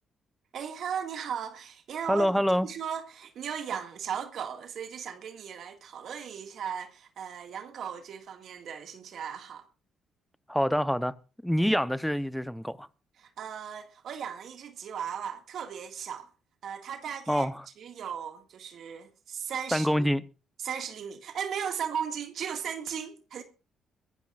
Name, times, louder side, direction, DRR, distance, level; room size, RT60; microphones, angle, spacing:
voice 1, 0.5-2.3 2.6-9.6 13.2-16.3 16.6-17.5 17.8-20.1 20.6-23.4, right 8 dB, 65° right, 2.0 m, -37 dB
voice 2, 2.1-2.7 10.5-11.1 11.4-12.9 17.3-17.6 19.7-20.2, equal, ahead, 0.8 m, -26 dB
22.5 x 14.5 x 2.5 m
cardioid pair, 90°, 0 cm